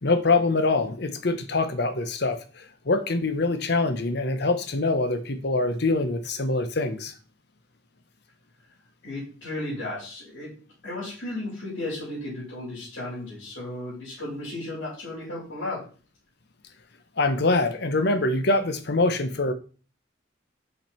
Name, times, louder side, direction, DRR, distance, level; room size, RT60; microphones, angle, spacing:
voice 1, 0.0-7.1 17.2-19.5, left 2 dB, 60° left, 9 dB, 0.9 m, -24 dB
voice 2, 9.0-10.5 10.8-15.9, left 2 dB, 75° left, -9 dB, 4.0 m, -34 dB
5.7 x 5.3 x 4.4 m, 0.37 s
head